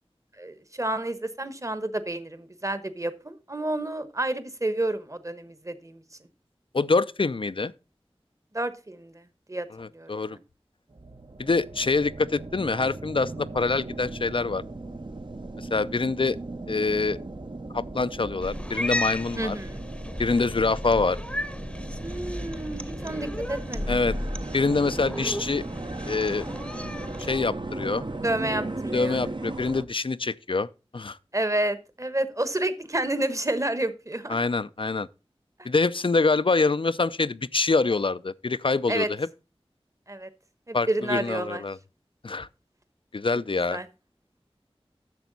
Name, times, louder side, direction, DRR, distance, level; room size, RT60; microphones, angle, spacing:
voice 1, 0.4-6.0 8.5-9.7 9.9-10.4 19.4-19.8 22.0-24.0 28.2-29.2 31.3-34.4 35.6-35.7 38.9-39.1 40.1-40.3 40.7-41.6 43.7-43.9, right 1 dB, 30° right, 1.1 m, -30 dB
voice 2, 6.7-7.7 9.7-10.4 11.4-14.6 15.6-16.4 16.7-17.2 17.7-19.6 20.2-21.2 23.9-24.2 24.5-25.6 26.1-26.4 27.2-28.0 28.9-30.7 30.9-31.2 34.3-35.1 35.6-39.3 40.7-41.8 42.2-42.5 43.1-43.8, left 3 dB, 55° left, 0.4 m, -25 dB
sound 1, 10.9-29.9, right 2 dB, 50° right, 0.7 m, -37 dB
Cat, 18.4-27.4, left 1 dB, 10° left, 0.8 m, -34 dB
10.5 x 6.9 x 4.0 m
wide cardioid pair, 50°, 10 cm